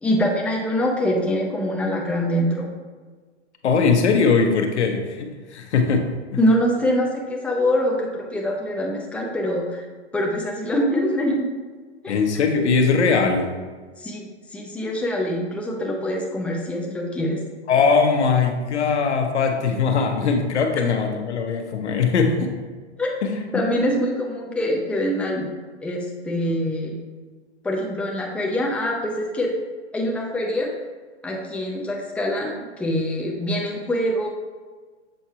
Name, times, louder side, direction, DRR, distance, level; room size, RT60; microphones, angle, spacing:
voice 1, 0.0-2.7 6.4-9.8 10.1-11.5 12.0-12.1 14.0-14.2 14.5-17.4 23.0-23.1 23.5-25.5 25.8-26.9 27.6-29.5 29.9-30.7 31.2-34.3, equal, 5° left, -2 dB, 0.6 m, -24 dB
voice 2, 3.6-6.1 12.1-13.5 17.7-22.5 23.2-23.6, left 5 dB, 70° left, 4 dB, 1.1 m, -20 dB
7.5 x 4.5 x 2.9 m, 1.4 s
hypercardioid pair, 130°, 35 cm